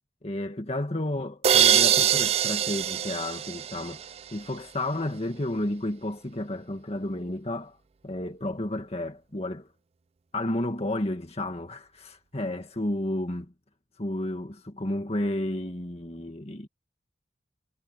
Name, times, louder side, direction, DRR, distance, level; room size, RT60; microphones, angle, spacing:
voice 1, 0.2-7.8 8.0-9.7 10.3-13.5 14.0-16.7, left 1 dB, 35° left, 1.8 m, -32 dB
sound 1, 1.4-4.3, right 9 dB, 35° right, 0.4 m, -23 dB
head